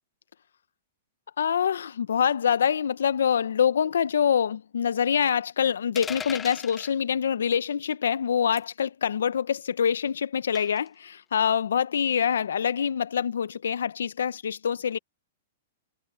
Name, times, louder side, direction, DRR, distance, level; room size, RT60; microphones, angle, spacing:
voice 1, 1.4-15.0, left 8 dB, 80° left, 1.1 m, -25 dB
sound 1, 6.0-6.9 8.6-8.8 10.6-10.9, left 7 dB, 20° left, 1.2 m, -37 dB
hypercardioid pair, 125°, 0 cm